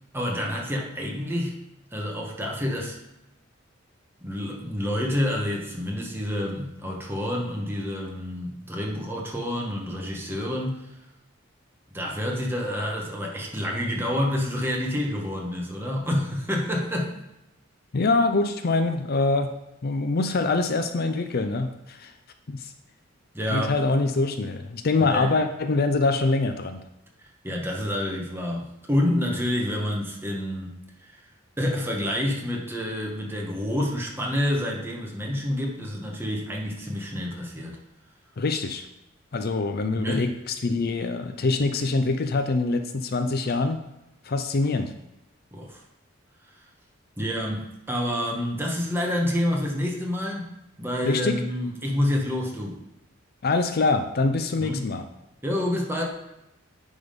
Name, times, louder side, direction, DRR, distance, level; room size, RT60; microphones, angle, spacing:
voice 1, 0.1-1.6 1.9-3.0 4.2-10.9 11.9-17.1 23.3-23.8 25.0-25.3 27.4-30.7 31.1-31.2 31.6-37.8 39.9-40.3 45.5-45.8 47.2-50.5 50.8-52.8 54.6-54.9 55.4-56.0, left 1 dB, 10° right, -1 dB, 1.3 m, -28 dB
voice 2, 17.9-19.5 19.8-22.1 22.5-22.7 23.5-26.8 38.4-38.8 39.3-43.8 44.2-44.9 51.0-51.4 53.4-55.0, left 3 dB, 50° left, 7 dB, 0.5 m, -24 dB
9.7 x 3.7 x 5.2 m, 0.91 s
head